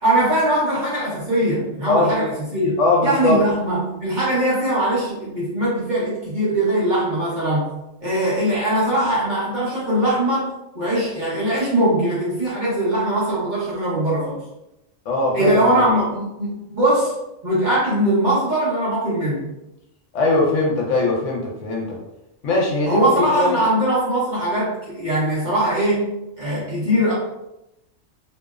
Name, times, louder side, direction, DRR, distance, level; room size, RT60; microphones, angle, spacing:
voice 1, 0.0-2.7 3.0-7.7 8.0-10.5 10.7-14.4 15.3-17.1 17.4-19.5 22.8-27.1, right 1 dB, 40° right, -8 dB, 0.8 m, -21 dB
voice 2, 1.9-2.2 2.8-3.4 15.1-15.9 20.1-22.0 22.4-23.1 23.3-23.6, left 2 dB, 75° left, -2 dB, 0.9 m, -20 dB
2.7 x 2.0 x 2.3 m, 0.89 s
omnidirectional pair, 1.4 m